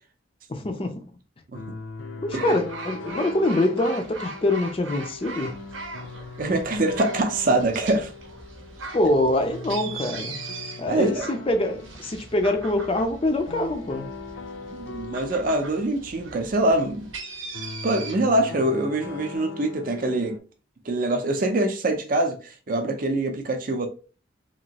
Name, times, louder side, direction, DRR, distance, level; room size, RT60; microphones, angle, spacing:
voice 1, 0.5-1.1 2.2-5.6 8.9-10.4 10.8-14.1, left 1 dB, 25° left, 0.4 m, -24 dB
sound 1, 1.5-20.4, left 4 dB, 75° left, 0.5 m, -41 dB
sound 2, 2.3-18.1, right 3 dB, 80° right, 0.7 m, -40 dB
voice 2, 6.4-8.1 10.9-11.3 14.7-17.1 17.8-20.4 20.9-23.9, right 1 dB, 45° right, 0.5 m, -24 dB
2.9 x 2.6 x 2.8 m
head